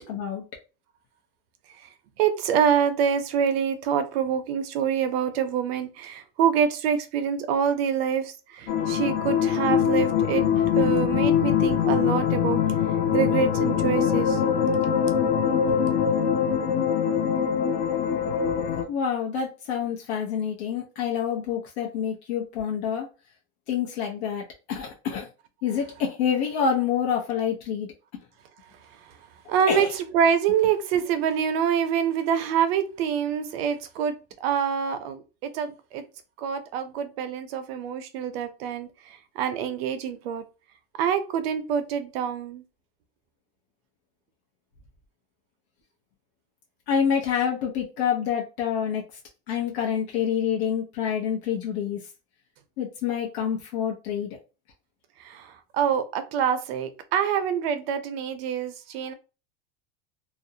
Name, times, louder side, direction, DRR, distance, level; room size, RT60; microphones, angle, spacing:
voice 1, 0.1-0.4 18.9-23.1 23.7-25.3 25.6-27.9 29.7-29.9 46.9-49.0 49.5-52.0 52.8-54.3, left 7 dB, 85° left, 0.8 m, -27 dB
voice 2, 2.2-12.6 13.1-14.4 29.5-34.1 34.4-36.0 36.4-40.4 41.0-42.6 55.2-59.1, right 8 dB, 70° right, 0.6 m, -26 dB
sound 1, 8.7-18.8, left 8 dB, 40° left, 0.4 m, -23 dB
2.5 x 2.0 x 2.6 m
supercardioid pair, 170°, 31 cm